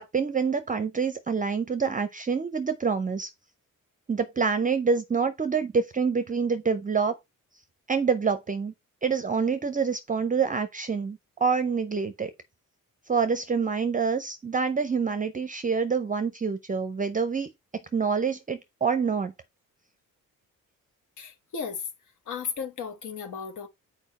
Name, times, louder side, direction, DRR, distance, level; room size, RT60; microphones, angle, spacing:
voice 1, 0.0-3.3 4.1-7.2 7.9-8.7 9.0-12.3 13.1-17.5 17.9-19.3, right 5 dB, 25° right, 0.6 m, -26 dB
voice 2, 21.2-21.8 22.3-23.7, left 6 dB, 65° left, 1.3 m, -35 dB
7.0 x 4.6 x 4.1 m
wide cardioid pair, 145°, 32 cm